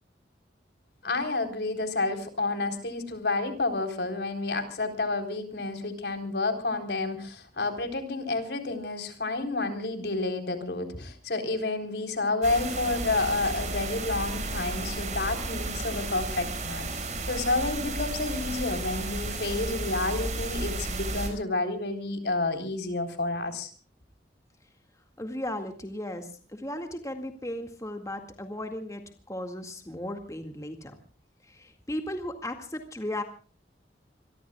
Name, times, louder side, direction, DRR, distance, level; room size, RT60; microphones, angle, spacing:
voice 1, 1.0-23.7, left 3 dB, 75° left, 6 dB, 3.9 m, -30 dB
sound 1, 12.4-21.3, right 2 dB, 45° right, 5.7 m, -33 dB
voice 2, 25.2-29.0 29.3-30.9 31.5-33.2, left 1 dB, 20° left, 5 dB, 2.0 m, -36 dB
26.0 x 23.5 x 2.3 m, 0.39 s
head